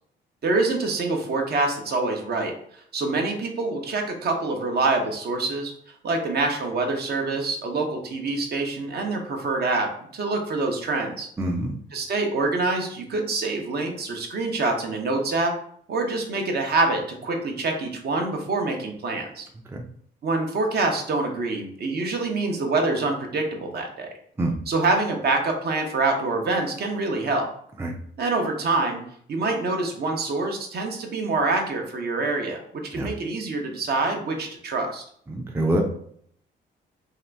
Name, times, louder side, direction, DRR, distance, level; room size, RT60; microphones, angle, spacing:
voice 1, 0.4-2.5 2.9-5.7 6.0-11.3 11.9-15.5 15.9-19.5 20.2-24.1 24.7-27.5 28.2-29.0 29.3-35.0, right 3 dB, 55° right, 2 dB, 0.8 m, -25 dB
voice 2, 11.4-11.8 19.7-19.8 24.4-24.5 27.8-27.9 32.9-33.1 35.3-35.8, right 1 dB, 10° right, 1 dB, 0.4 m, -25 dB
2.8 x 2.5 x 3.3 m, 0.64 s
cardioid pair, 90°, 20 cm